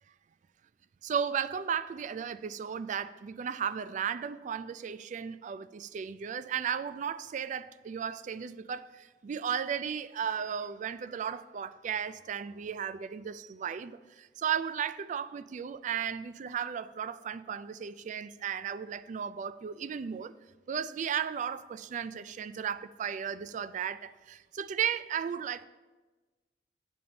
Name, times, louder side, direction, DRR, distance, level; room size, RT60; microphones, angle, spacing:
voice 1, 1.0-20.3 20.7-25.7, right 8 dB, 45° right, 15 dB, 0.3 m, -35 dB
8.5 x 3.9 x 6.9 m, 1.2 s
head